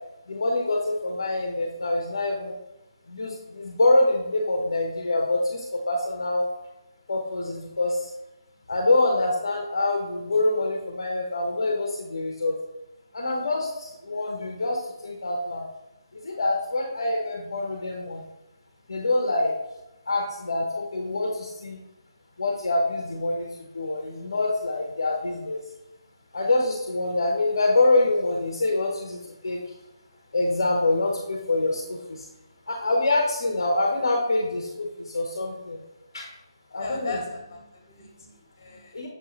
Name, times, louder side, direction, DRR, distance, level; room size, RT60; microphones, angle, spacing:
voice 1, 0.3-2.6 3.1-6.5 7.1-8.1 8.7-12.6 13.1-15.7 16.1-18.2 18.9-19.5 20.1-21.8 22.4-25.6 26.3-29.6 30.3-32.3 32.7-35.8 36.1-36.3 36.7-37.2 38.9-39.1, left 2 dB, 60° left, 0 dB, 0.6 m, -25 dB
voice 2, 36.8-39.1, left 3 dB, 35° left, 2 dB, 0.9 m, -38 dB
6.5 x 2.3 x 2.9 m, 0.93 s
figure-of-eight pair, 145°, 3 cm